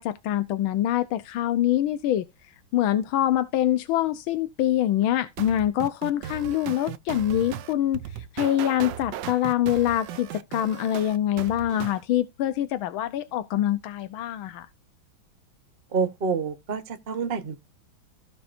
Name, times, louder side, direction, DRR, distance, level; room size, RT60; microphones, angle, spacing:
voice 1, 0.0-2.2 2.7-14.7, left 12 dB, 90° left, 1.6 m, -25 dB
sound 1, 5.4-12.0, right 10 dB, 70° right, 1.3 m, -37 dB
voice 2, 15.9-17.6, right 5 dB, 35° right, 1.0 m, -28 dB
15.5 x 5.9 x 2.6 m
omnidirectional pair, 2.2 m